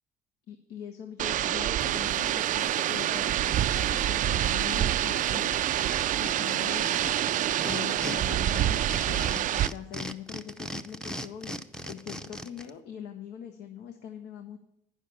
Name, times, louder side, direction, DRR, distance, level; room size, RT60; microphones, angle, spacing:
voice 1, 0.5-5.6 6.2-11.6 11.8-14.6, left 9 dB, 80° left, 7 dB, 1.1 m, -42 dB
sound 1, 1.2-9.7, right 12 dB, 50° right, 0.4 m, -27 dB
sound 2, 1.8-1.9 2.2-4.1 4.4-4.5 4.7-8.2 8.5-12.7, equal, 5° left, 0.6 m, -39 dB
9.9 x 6.5 x 8.4 m, 0.79 s
cardioid pair, 110°, 17 cm